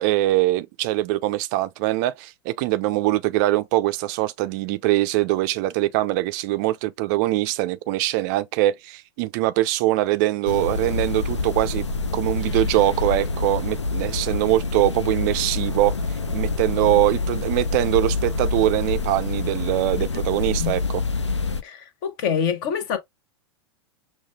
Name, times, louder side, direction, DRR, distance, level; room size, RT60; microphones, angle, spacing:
voice 1, 0.0-11.9 12.1-16.0 16.3-20.8, right 16 dB, 40° right, 0.4 m, -22 dB
sound 1, 10.5-21.6, left 3 dB, 85° left, 0.4 m, -26 dB
voice 2, 21.6-23.0, left 7 dB, 45° left, 0.8 m, -26 dB
6.2 x 2.1 x 2.3 m
figure-of-eight pair, 90°, 14 cm